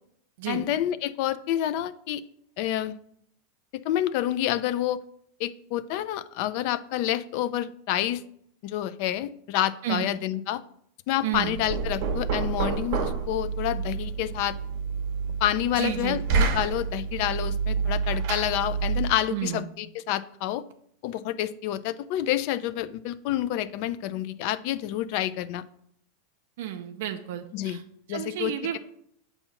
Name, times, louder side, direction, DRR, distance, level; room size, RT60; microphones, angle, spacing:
voice 1, 0.5-2.2 2.6-2.9 3.7-5.0 5.4-8.2 8.6-10.6 11.1-14.5 15.4-20.6 21.0-25.6 27.5-27.8 28.1-28.8, left 12 dB, 55° left, 14 dB, 0.3 m, -28 dB
voice 2, 11.2-11.6 15.7-16.2 19.3-19.7 26.6-27.8 28.1-28.8, right 11 dB, 75° right, 5 dB, 0.5 m, -31 dB
Knock, 11.3-19.2, right 5 dB, 55° right, 0.9 m, -28 dB
6.9 x 2.8 x 5.6 m, 0.69 s
supercardioid pair, 140°, 0 cm